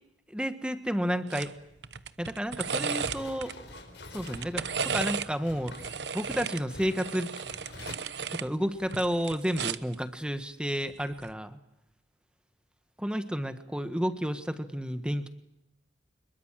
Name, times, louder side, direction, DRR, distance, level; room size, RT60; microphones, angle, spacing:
voice 1, 0.3-1.5 2.2-3.5 4.1-5.7 6.1-7.3 8.3-11.6 13.0-15.3, equal, 5° right, 10 dB, 1.5 m, -31 dB
sound 1, 1.3-1.5 1.8-3.5 4.2-5.3 5.7-8.5 8.8-9.9 11.1-11.3, right 6 dB, 70° right, 1.0 m, -34 dB
sound 2, 2.8-7.9, left 2 dB, 75° left, 4.7 m, -46 dB
26.0 x 22.5 x 7.6 m, 0.87 s
head